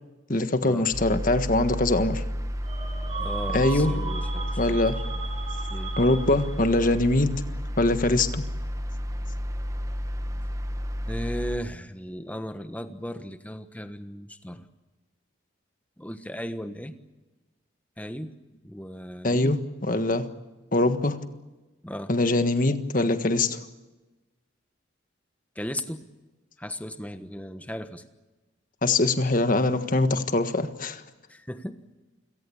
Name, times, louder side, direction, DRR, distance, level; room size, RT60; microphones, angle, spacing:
voice 1, 0.3-2.2 3.5-3.9 4.6-4.9 6.0-7.3 7.8-8.4 19.2-20.3 20.7-21.2 22.1-23.6 28.8-31.0, left 2 dB, 45° left, 9 dB, 1.6 m, -23 dB
sound 1, 0.9-11.6, equal, 15° right, 1.2 m, -31 dB
sound 2, 2.6-6.8, right 5 dB, 35° right, 6.4 m, -37 dB
voice 2, 3.2-4.8 5.7-6.0 11.1-14.7 16.0-16.9 18.0-18.3 18.6-19.6 21.8-22.1 25.5-26.1 26.6-28.0 31.3-31.8, equal, 10° left, 9 dB, 1.3 m, -36 dB
29.0 x 17.5 x 8.6 m, 1.1 s
head